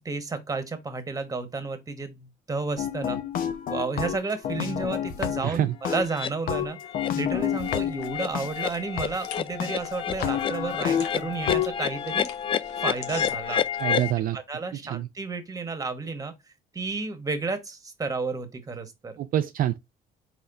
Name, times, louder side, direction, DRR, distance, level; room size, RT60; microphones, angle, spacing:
voice 1, 0.0-3.2 3.7-6.8 7.2-12.3 12.8-13.6 14.3-16.3 16.7-19.2, right 4 dB, 20° right, 1.2 m, -32 dB
sound 1, 2.8-5.6 5.8-8.5 9.0-9.1 9.6-9.7 10.1-11.7, left 9 dB, 60° left, 0.9 m, -29 dB
voice 2, 5.4-5.7 13.8-14.4 14.9-15.1 19.2-19.8, right 12 dB, 55° right, 0.4 m, -26 dB
sound 2, 6.1-6.3 6.8-7.1 7.4-14.1, left 8 dB, 30° left, 0.4 m, -30 dB
sound 3, 7.0-14.1, left 8 dB, 80° left, 1.0 m, -46 dB
4.5 x 4.3 x 2.5 m
cardioid pair, 110°, 17 cm